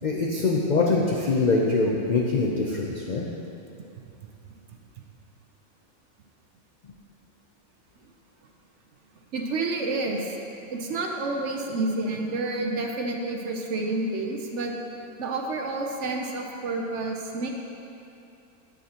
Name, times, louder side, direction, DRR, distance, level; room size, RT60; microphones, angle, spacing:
voice 1, 0.0-3.3, left 3 dB, 70° left, -2 dB, 0.4 m, -24 dB
voice 2, 9.3-10.2 10.7-14.8 15.2-17.5, right 2 dB, 65° right, 1 dB, 0.9 m, -29 dB
9.4 x 6.8 x 2.8 m, 2.7 s
omnidirectional pair, 1.5 m